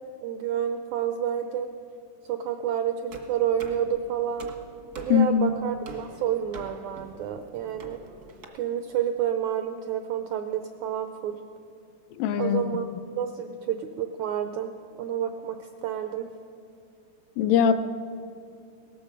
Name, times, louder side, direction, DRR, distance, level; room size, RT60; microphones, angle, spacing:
voice 1, 0.2-1.7 2.3-4.5 5.0-8.0 8.6-11.4 12.4-12.9 13.2-14.7 15.0-16.3, right 9 dB, 85° right, 7 dB, 1.6 m, -29 dB
sound 1, 3.1-8.4, right 2 dB, 65° right, 0.9 m, -46 dB
voice 2, 5.1-5.5 12.1-12.9 17.4-17.7, left 7 dB, 80° left, 9 dB, 2.3 m, -22 dB
18.0 x 14.0 x 5.2 m, 2.5 s
omnidirectional pair, 3.9 m